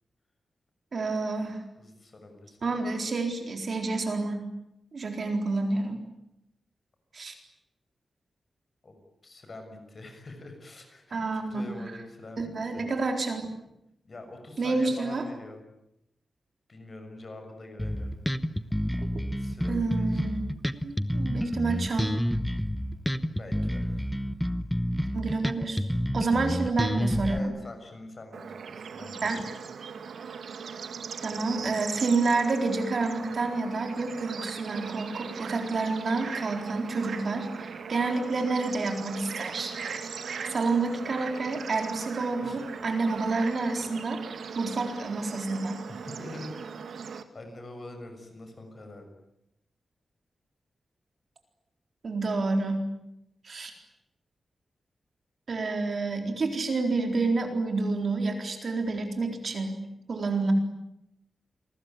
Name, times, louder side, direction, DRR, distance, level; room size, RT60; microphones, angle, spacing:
voice 1, 0.9-1.6 2.6-4.5 4.9-6.0 7.1-7.3 11.1-11.7 12.4-13.4 14.6-15.3 19.1-19.2 19.7-20.4 20.8-22.1 25.1-25.8 26.1-27.5 29.2-29.4 31.2-39.8 40.5-44.2 44.6-45.8 52.0-52.9 53.4-53.7 55.5-59.8 60.1-60.5, right 3 dB, 45° right, 4 dB, 4.1 m, -29 dB
voice 2, 1.8-2.8 8.8-8.9 9.2-12.8 14.0-15.6 16.7-18.2 19.3-20.3 23.2-24.3 27.3-29.5 42.4-42.6 45.8-46.5 47.3-49.1, left 2 dB, 35° left, 5 dB, 6.5 m, -45 dB
Bass guitar, 17.8-27.4, equal, ahead, 1.0 m, -29 dB
Bird / Insect / Frog, 28.3-47.2, right 6 dB, 85° right, 2.1 m, -39 dB
sound 1, 33.7-43.9, right 5 dB, 70° right, 3.2 m, -43 dB
29.0 x 20.5 x 9.3 m, 0.84 s
wide cardioid pair, 165°, 0 cm